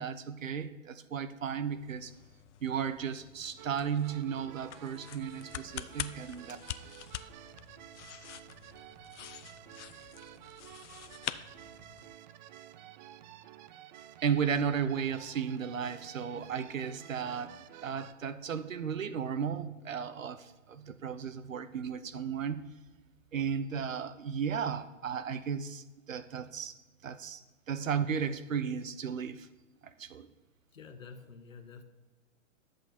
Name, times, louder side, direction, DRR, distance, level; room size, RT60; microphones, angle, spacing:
voice 1, 0.0-2.1 2.6-6.6 14.2-17.6 17.8-22.7 23.3-26.7 27.0-27.4 27.7-29.5 30.0-30.3, right 7 dB, 80° right, 13 dB, 0.8 m, -34 dB
sound 1, 1.4-12.2, left 11 dB, 65° left, 0.6 m, -46 dB
sound 2, 3.6-18.1, right 12 dB, 40° right, 0.4 m, -52 dB
voice 2, 30.7-31.8, left 5 dB, 85° left, 7 dB, 1.3 m, -49 dB
11.0 x 7.8 x 4.4 m, 1.2 s
hypercardioid pair, 115°, 39 cm